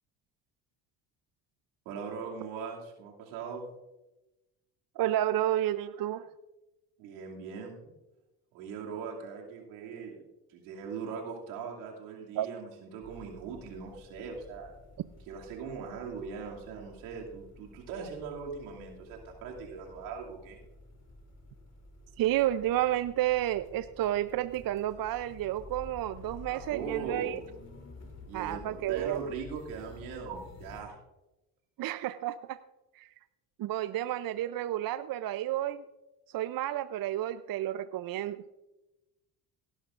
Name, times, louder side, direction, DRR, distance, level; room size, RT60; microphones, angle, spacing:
voice 1, 1.8-3.6 7.0-7.8 8.5-10.2 10.5-14.7 15.3-20.6 26.5-27.5 28.3-30.9, right 5 dB, 85° right, -1 dB, 2.7 m, -40 dB
voice 2, 5.0-6.3 12.4-12.5 22.2-27.4 28.3-29.2 31.8-32.6 32.9-33.1 33.6-35.8 36.3-38.4, right 13 dB, 55° right, 13 dB, 0.6 m, -31 dB
sound 1, 13.0-30.9, left 3 dB, 35° left, 3.2 m, -51 dB
18.0 x 11.5 x 2.5 m, 1.0 s
supercardioid pair, 65°, 44 cm